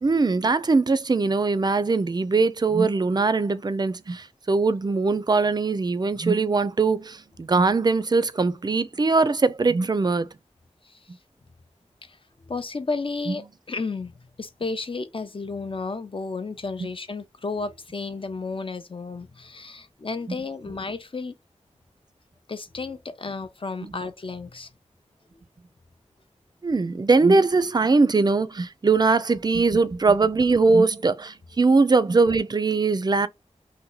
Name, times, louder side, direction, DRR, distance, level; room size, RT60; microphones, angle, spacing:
voice 1, 0.0-10.3 13.3-13.4 26.6-33.3, right 3 dB, 35° right, 0.4 m, -21 dB
voice 2, 12.5-14.1 14.4-21.3 22.5-24.7, left 4 dB, 45° left, 0.6 m, -32 dB
2.8 x 2.1 x 3.8 m
wide cardioid pair, 45°, 13 cm